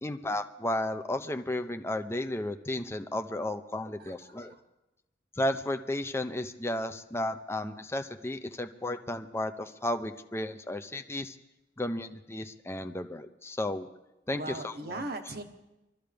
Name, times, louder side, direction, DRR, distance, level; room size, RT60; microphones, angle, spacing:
voice 1, 0.0-4.6 5.4-11.4 11.8-13.9 14.3-15.0, left 1 dB, 15° left, 7 dB, 0.7 m, -33 dB
voice 2, 4.0-4.6 14.3-15.4, right 2 dB, 60° right, 6 dB, 1.3 m, -39 dB
24.0 x 13.0 x 3.5 m, 0.96 s
head